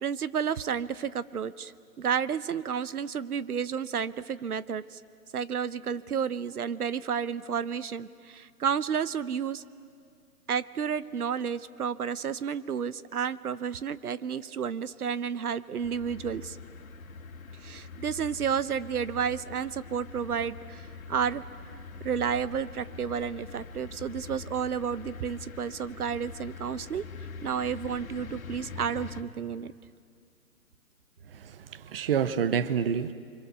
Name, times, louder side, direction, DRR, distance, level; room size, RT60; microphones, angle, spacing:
voice 1, 0.0-5.0 5.3-9.6 10.5-16.6 17.6-21.4 22.0-27.0 27.4-29.7, right 7 dB, 75° right, 15 dB, 0.9 m, -31 dB
sound 1, 15.8-29.2, left 4 dB, 65° left, 2.1 m, -44 dB
voice 2, 31.4-33.1, right 7 dB, 40° right, 13 dB, 1.0 m, -28 dB
30.0 x 25.0 x 6.9 m, 2.2 s
hypercardioid pair, 155°, 45 cm